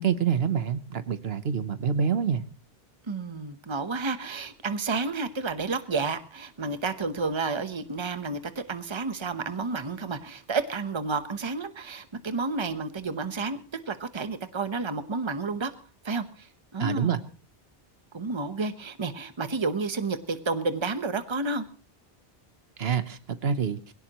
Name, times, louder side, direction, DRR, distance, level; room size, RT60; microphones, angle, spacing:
voice 1, 0.0-2.4 16.8-17.2 22.8-23.8, right 7 dB, 75° right, 12 dB, 1.2 m, -26 dB
voice 2, 3.1-13.6 13.9-15.7 16.0-16.5 16.7-17.2 18.1-21.6, right 3 dB, 30° right, 10 dB, 1.0 m, -31 dB
22.0 x 17.0 x 3.0 m, 0.37 s
omnidirectional pair, 1.0 m